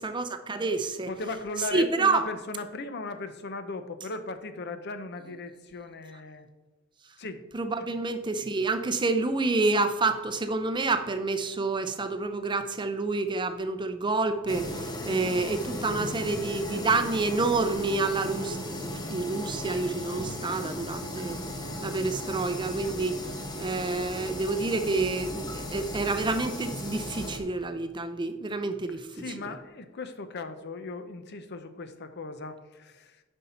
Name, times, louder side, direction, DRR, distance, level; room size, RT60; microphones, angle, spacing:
voice 1, 0.0-1.1 1.7-2.2 7.5-21.4 21.8-23.2 23.6-29.1, right 3 dB, 25° right, 8 dB, 0.6 m, -28 dB
voice 2, 1.1-6.5 7.2-7.4 7.9-8.0 29.1-33.2, left 3 dB, 55° left, 9 dB, 0.8 m, -37 dB
sound 1, 14.5-27.4, left 1 dB, 20° left, 1.0 m, -36 dB
9.7 x 5.5 x 4.3 m, 1.1 s
head